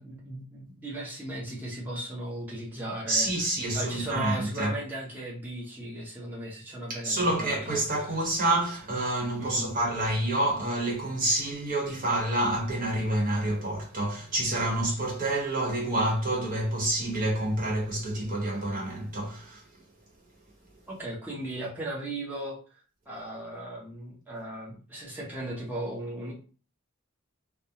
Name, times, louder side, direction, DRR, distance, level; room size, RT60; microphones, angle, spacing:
voice 1, 0.0-3.3 3.7-8.2 9.4-9.8 20.9-26.3, right 1 dB, 10° right, 0.7 m, -37 dB
voice 2, 3.1-4.7 6.9-19.6, right 1 dB, 40° right, 0.9 m, -28 dB
2.3 x 2.1 x 2.8 m
head